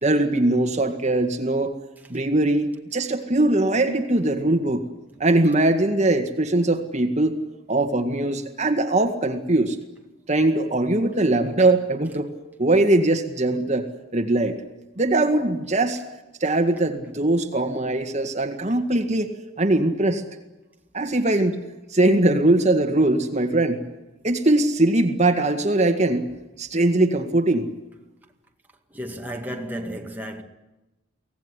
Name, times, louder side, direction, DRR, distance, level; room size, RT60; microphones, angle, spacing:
voice 1, 0.0-1.7 2.1-4.8 5.2-7.4 7.7-9.8 10.3-12.3 12.6-13.9 14.1-14.6 15.0-16.0 16.4-19.3 19.6-20.2 20.9-21.6 21.9-23.8 24.2-26.3 26.6-27.7, right 2 dB, 35° right, 1.9 m, -21 dB
voice 2, 28.9-30.4, equal, 10° right, 2.1 m, -33 dB
24.0 x 18.0 x 9.9 m
head